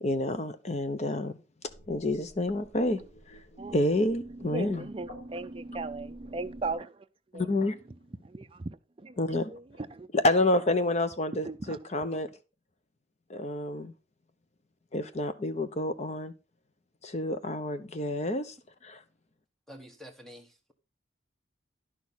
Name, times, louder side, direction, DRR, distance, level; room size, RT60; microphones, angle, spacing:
voice 1, 0.0-1.4 1.9-3.0 3.3-3.4 3.7-4.8 7.3-7.8 9.2-9.5 10.1-12.3 13.3-13.9 14.9-16.3 17.0-18.5 18.8-19.0, left 1 dB, 35° left, 0.8 m, -28 dB
sound 1, 1.7-6.8, equal, 85° left, 4.4 m, -53 dB
voice 2, 4.3-7.1 7.3-7.6 8.2-10.1 11.4-11.8, right 3 dB, 30° right, 0.5 m, -38 dB
voice 3, 19.7-20.7, equal, ahead, 1.2 m, -48 dB
11.0 x 6.3 x 4.0 m
head